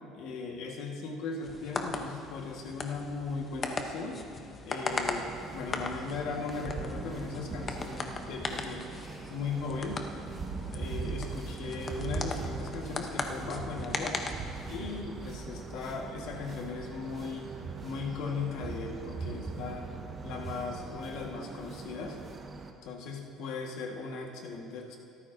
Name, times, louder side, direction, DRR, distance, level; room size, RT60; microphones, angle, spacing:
voice 1, 0.1-4.2 4.6-8.9 9.3-10.0 10.7-14.2 14.7-17.5 17.8-19.9 20.2-22.2 22.8-25.0, left 4 dB, 70° left, 1 dB, 1.5 m, -38 dB
sound 1, 1.4-15.0, left 3 dB, 25° left, 0.7 m, -39 dB
sound 2, 4.9-22.7, right 4 dB, 25° right, 0.8 m, -41 dB
16.5 x 13.5 x 2.7 m, 2.6 s
cardioid pair, 145°, 0 cm